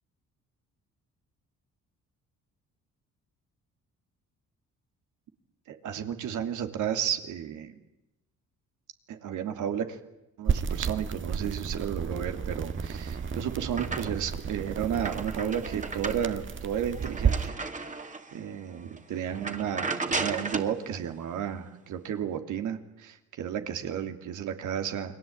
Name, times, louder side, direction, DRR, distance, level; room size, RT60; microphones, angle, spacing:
voice 1, 5.7-7.8 9.1-10.0 10.4-17.5 17.9-18.0 18.3-25.2, right 9 dB, 80° right, 7 dB, 2.9 m, -33 dB
sound 1, 10.5-17.5, right 6 dB, 40° right, 1.5 m, -32 dB
sound 2, 12.8-14.4 14.8-18.4 18.8-19.0 19.3-20.8, right 3 dB, 25° right, 2.5 m, -35 dB
29.5 x 21.5 x 8.8 m, 0.91 s
cardioid pair, 90°, 30 cm